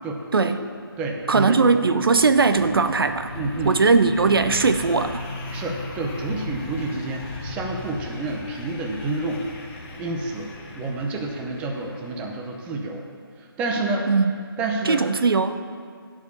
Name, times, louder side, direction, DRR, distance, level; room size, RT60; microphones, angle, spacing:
voice 1, 0.0-0.5 1.0-1.6 3.3-3.7 5.5-9.4 10.0-10.5 10.7-13.0 13.6-14.1 14.6-15.0, right 2 dB, 10° right, 1 dB, 0.6 m, -29 dB
sound 1, 0.8-12.5, left 2 dB, 30° left, 1.2 m, -37 dB
voice 2, 1.3-3.3 3.6-5.2 14.1-14.3 14.8-15.7, right 4 dB, 65° right, 9 dB, 0.5 m, -19 dB
11.5 x 4.8 x 6.7 m, 2.1 s
figure-of-eight pair, 145°, 13 cm